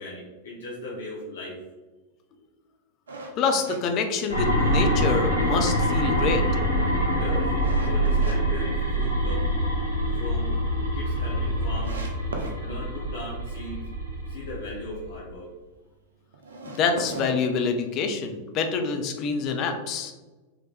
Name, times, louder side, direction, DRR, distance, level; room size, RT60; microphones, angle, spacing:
voice 1, 0.0-1.6 7.0-7.5 7.8-9.5 10.1-10.5 10.9-12.0 12.6-13.8 14.3-15.5, left 1 dB, 65° left, -5 dB, 1.0 m, -37 dB
sound 1, 3.1-4.8 5.2-5.3 5.8-8.4 8.8-9.5 9.9-10.0 10.3-10.4 10.6-10.7 11.3-11.4 11.8-12.6 16.3-18.2, right 2 dB, 70° right, 0.7 m, -38 dB
voice 2, 3.4-6.4 16.6-20.1, left 5 dB, 35° left, 5 dB, 0.7 m, -26 dB
sound 2, 4.3-15.0, equal, 90° left, 1.1 m, -25 dB
4.9 x 3.0 x 3.3 m, 1.2 s
figure-of-eight pair, 90°, 0 cm